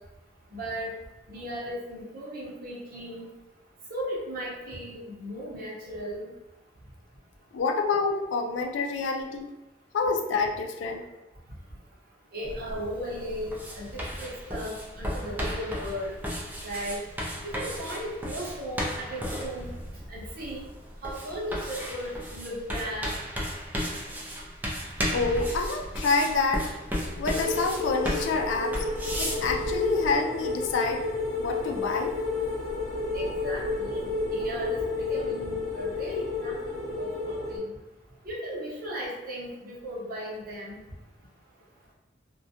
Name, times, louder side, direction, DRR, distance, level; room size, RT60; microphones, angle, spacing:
voice 1, 0.5-0.9 1.3-3.3 3.9-6.3 12.3-16.2 16.6-17.0 17.4-19.7 20.1-20.6 21.0-23.1 33.1-37.8 38.2-40.8, equal, 50° right, -5 dB, 0.7 m, -36 dB
voice 2, 7.5-9.5 9.9-11.1 25.1-26.7 27.2-28.9 29.2-31.1 31.4-32.2, left 4 dB, 85° left, 4 dB, 0.3 m, -27 dB
sound 1, 12.4-30.1, equal, 10° right, 0.4 m, -35 dB
sound 2, 27.3-37.6, left 3 dB, 60° left, 0.9 m, -31 dB
2.2 x 2.1 x 2.7 m, 0.96 s
head